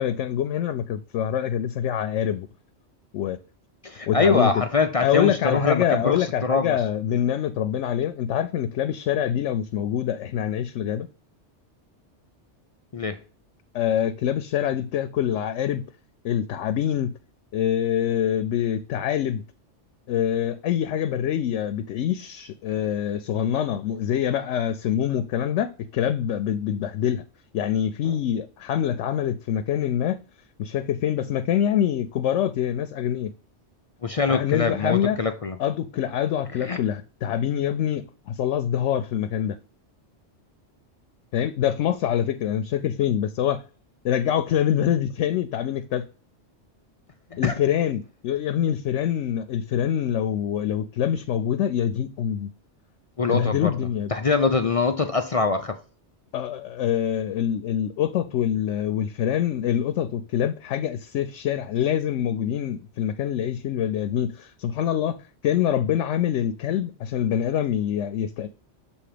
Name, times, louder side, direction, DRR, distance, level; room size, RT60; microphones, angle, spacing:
voice 1, 0.0-2.5 3.1-3.4 4.1-4.5 5.0-11.1 13.7-15.8 16.2-17.1 17.5-19.4 20.1-27.2 27.5-30.2 30.6-33.3 34.3-35.2 35.6-39.6 41.3-43.6 44.0-46.0 47.4-52.5 53.3-54.1 56.3-65.2 65.4-68.5, left 10 dB, 90° left, 0.9 m, -25 dB
voice 2, 3.8-6.8 12.9-13.2 34.0-35.6 36.6-36.8 47.3-47.5 53.2-53.8 54.1-55.8, left 4 dB, 50° left, 0.4 m, -23 dB
7.1 x 2.9 x 4.9 m
omnidirectional pair, 1.2 m